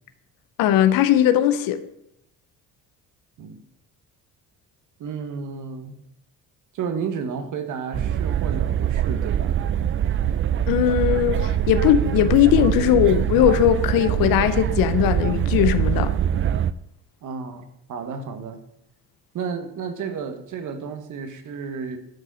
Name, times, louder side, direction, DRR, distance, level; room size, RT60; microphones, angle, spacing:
voice 1, 0.6-1.8 10.7-16.1, left 11 dB, 85° left, 0.8 m, -19 dB
voice 2, 5.0-5.9 6.7-9.6 17.2-18.6 19.3-22.0, right 6 dB, 60° right, 1.5 m, -32 dB
sound 1, 7.9-16.7, right 10 dB, 40° right, 0.4 m, -23 dB
11.0 x 4.9 x 6.2 m
cardioid pair, 115°, 34 cm